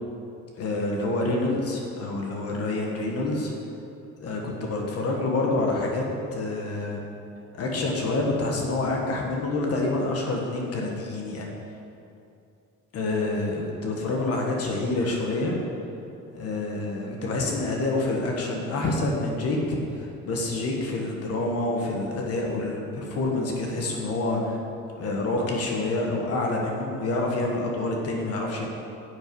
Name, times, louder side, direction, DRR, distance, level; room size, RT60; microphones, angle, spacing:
voice 1, 0.6-3.5 4.2-6.0 6.3-7.0 7.5-11.5 12.9-15.6 16.3-19.6 19.9-24.6 25.0-28.7, left 2 dB, 55° left, 0 dB, 1.5 m, -27 dB
10.5 x 8.2 x 4.7 m, 2.6 s
cardioid pair, 175°, 30 cm